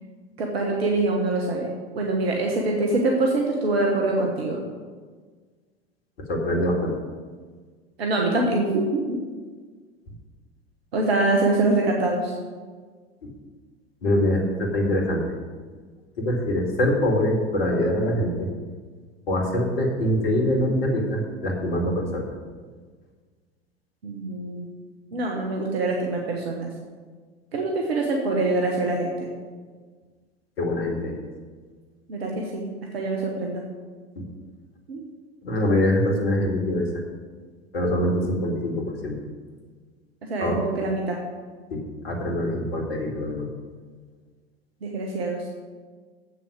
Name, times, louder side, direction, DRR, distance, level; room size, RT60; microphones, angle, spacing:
voice 1, 0.4-4.6 8.0-9.2 10.9-12.4 24.0-24.7 25.1-26.7 27.5-29.3 32.1-32.6 32.9-33.6 34.9-35.1 40.3-41.2 44.8-45.4, right 2 dB, 70° right, 0 dB, 1.2 m, -24 dB
voice 2, 6.3-6.9 13.2-13.3 14.0-15.4 16.2-18.5 19.3-22.3 30.6-31.2 34.2-34.3 35.4-36.9 37.7-39.2 40.4-40.6 41.7-43.5, left 1 dB, 65° left, 1 dB, 2.1 m, -24 dB
7.8 x 6.4 x 7.5 m, 1.5 s
figure-of-eight pair, 75°, 32 cm